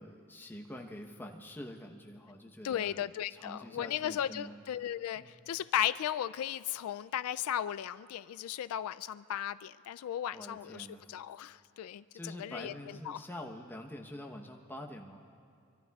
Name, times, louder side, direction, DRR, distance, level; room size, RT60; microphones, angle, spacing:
voice 1, 0.0-4.6 5.1-5.4 10.3-11.1 12.1-15.2, left 1 dB, 10° left, 1 dB, 0.9 m, -46 dB
voice 2, 2.6-13.2, left 10 dB, 80° left, 15 dB, 0.3 m, -36 dB
25.5 x 24.0 x 2.4 m, 2.4 s
head